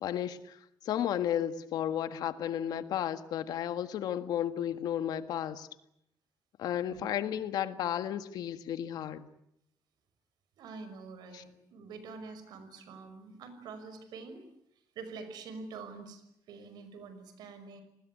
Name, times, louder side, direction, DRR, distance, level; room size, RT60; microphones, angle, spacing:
voice 1, 0.0-0.6 0.8-5.7 6.6-9.3 11.3-11.4, left 10 dB, 75° left, 11 dB, 1.7 m, -33 dB
voice 2, 10.6-14.4 15.0-17.8, right 4 dB, 90° right, 10 dB, 5.7 m, -46 dB
28.5 x 20.0 x 9.5 m, 0.80 s
cardioid pair, 160°, 7 cm